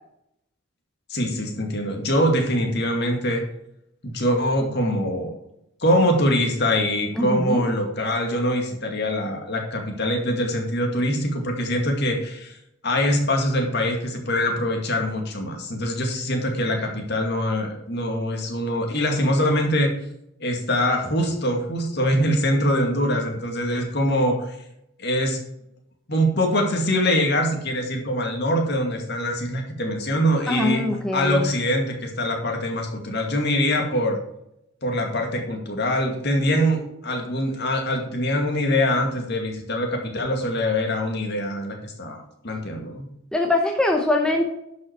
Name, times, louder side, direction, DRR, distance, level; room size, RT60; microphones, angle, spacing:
voice 1, 1.1-3.4 4.0-5.4 5.8-12.6 12.8-19.9 20.4-24.6 25.0-25.4 26.1-30.8 31.1-34.2 34.8-43.0, equal, 50° left, 2 dB, 2.2 m, -23 dB
voice 2, 7.1-7.6 30.5-31.5 43.3-44.4, left 2 dB, 5° left, 1 dB, 0.9 m, -22 dB
11.5 x 5.6 x 4.6 m, 0.79 s
head